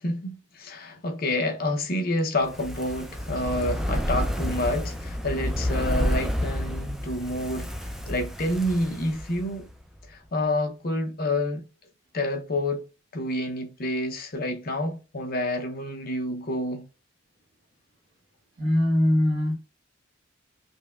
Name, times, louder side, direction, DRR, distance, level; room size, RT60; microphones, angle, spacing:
voice 1, 0.0-7.7 8.1-9.7 10.1-11.7 12.1-12.8 13.1-16.9, left 1 dB, 45° left, 0.7 m, -28 dB
Fire, 2.4-9.7 10.0-10.1, equal, ahead, 0.3 m, -30 dB
voice 2, 18.6-19.5, left 1 dB, 65° right, 1.1 m, -21 dB
5.2 x 2.2 x 2.3 m
head